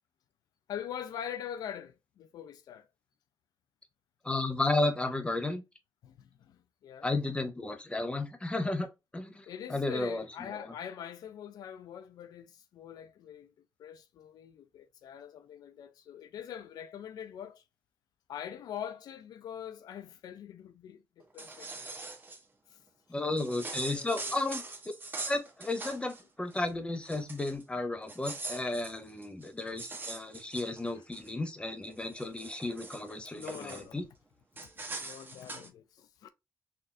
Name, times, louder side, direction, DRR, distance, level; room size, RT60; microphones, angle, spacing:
voice 1, 0.7-2.9 6.0-7.1 9.5-13.5 13.8-17.6 18.3-22.0 22.7-22.8 23.2-24.4 30.9-31.0 33.3-34.0 35.0-36.3, left 9 dB, 85° left, 0.4 m, -44 dB
voice 2, 4.2-5.6 7.0-10.2 10.5-10.7 23.1-24.6 25.3-34.0, left 2 dB, 15° left, 0.9 m, -33 dB
sound 1, 21.2-22.4 23.4-26.2 26.5-26.7 27.0-27.6 28.0-31.3 31.8-33.9 34.6-35.7, right 3 dB, 30° right, 0.9 m, -42 dB
4.1 x 2.7 x 2.4 m
cardioid pair, 80°, 6 cm